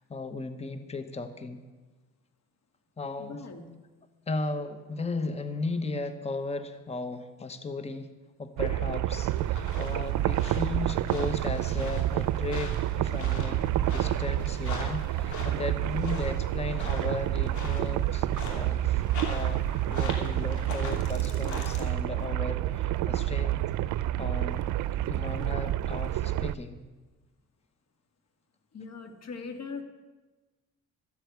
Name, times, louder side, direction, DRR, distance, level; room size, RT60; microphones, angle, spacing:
voice 1, 0.1-1.6 3.0-3.4 4.3-8.1 8.4-23.6 24.2-24.6 25.1-26.8, left 3 dB, 20° left, 10 dB, 1.0 m, -36 dB
voice 2, 3.2-3.8 28.7-29.8, left 4 dB, 60° left, 6 dB, 1.9 m, -40 dB
sound 1, 8.6-26.5, right 13 dB, 75° right, 0.5 m, -29 dB
sound 2, 9.3-21.8, left 3 dB, 75° left, 2.9 m, -43 dB
13.5 x 8.1 x 8.1 m, 1.2 s
cardioid pair, 90°, 30 cm